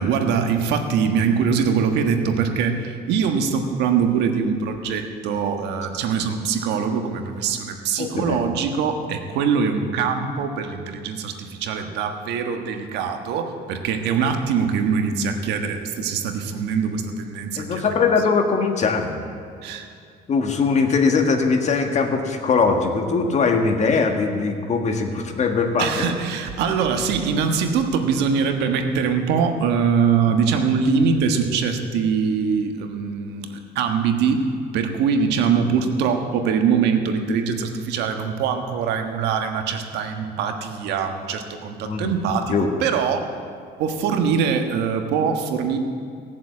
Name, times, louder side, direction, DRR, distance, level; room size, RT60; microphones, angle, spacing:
voice 1, 0.0-17.9 19.6-19.9 25.8-34.5 34.7-43.3 43.8-45.8, right 6 dB, 85° right, 5 dB, 1.4 m, -23 dB
voice 2, 8.0-8.4 17.6-19.1 20.3-26.1 41.8-42.1 42.5-42.7, left 4 dB, 45° left, 4 dB, 1.7 m, -21 dB
17.5 x 7.4 x 8.4 m, 2.3 s
cardioid pair, 110°, 17 cm